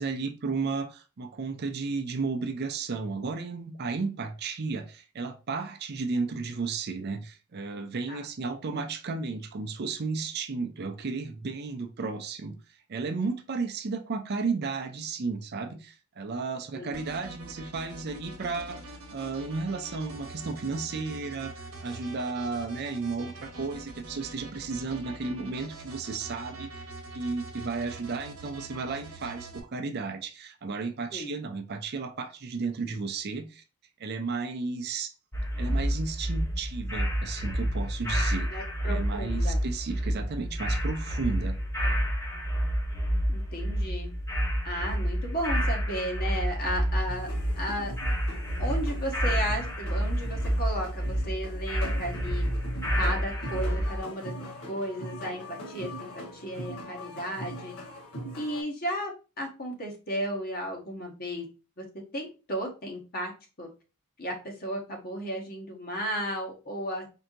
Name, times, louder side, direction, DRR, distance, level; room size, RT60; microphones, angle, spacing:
voice 1, 0.0-12.6 12.9-18.8 19.1-26.7 27.1-33.6 34.0-35.1 35.6-38.5 38.8-41.6, right 4 dB, 50° right, 0.5 m, -33 dB
sound 1, 16.9-29.6, right 2 dB, 75° right, 1.0 m, -44 dB
sound 2, 35.3-54.0, equal, 15° left, 0.6 m, -29 dB
voice 2, 38.5-39.6 43.3-44.1 44.6-47.3 47.5-47.9 48.6-52.4 53.0-54.3 54.7-56.1 56.4-57.7 58.3-61.4 61.8-61.9 62.1-63.3 63.6-63.7 64.2-67.1, equal, 45° left, 1.2 m, -34 dB
sound 3, 47.1-58.6, equal, 80° left, 1.4 m, -41 dB
4.5 x 2.8 x 2.5 m
head